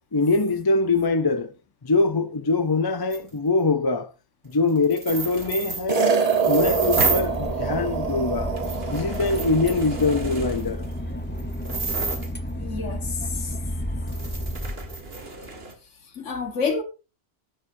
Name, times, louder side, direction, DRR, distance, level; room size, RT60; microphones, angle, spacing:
voice 1, 0.1-1.5 1.8-4.1 4.4-6.1 6.5-8.5 8.9-10.9, left 3 dB, 30° left, 0.5 m, -23 dB
sound 1, 3.1-3.2 4.8-7.4 8.1-8.2 8.6-12.6 13.5-13.6 14.1-15.7, right 4 dB, 55° right, 2.1 m, -31 dB
sound 2, 5.9-10.3, right 5 dB, 35° right, 1.2 m, -25 dB
Boat Water vehicle / Engine, 6.5-15.4, equal, 10° left, 1.0 m, -32 dB
voice 2, 12.5-13.6 16.1-16.8, left 4 dB, 85° left, 1.8 m, -29 dB
12.5 x 11.0 x 2.7 m
omnidirectional pair, 1.2 m